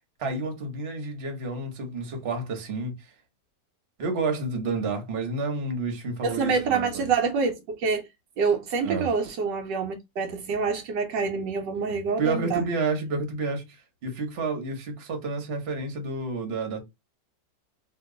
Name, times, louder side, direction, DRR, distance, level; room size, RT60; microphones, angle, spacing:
voice 1, 0.2-3.0 4.0-7.1 8.8-9.1 11.9-13.6 14.0-16.8, right 3 dB, 40° right, 1.0 m, -30 dB
voice 2, 6.2-8.1 8.4-12.7, right 5 dB, 75° right, 1.2 m, -26 dB
2.9 x 2.5 x 3.7 m
omnidirectional pair, 2.0 m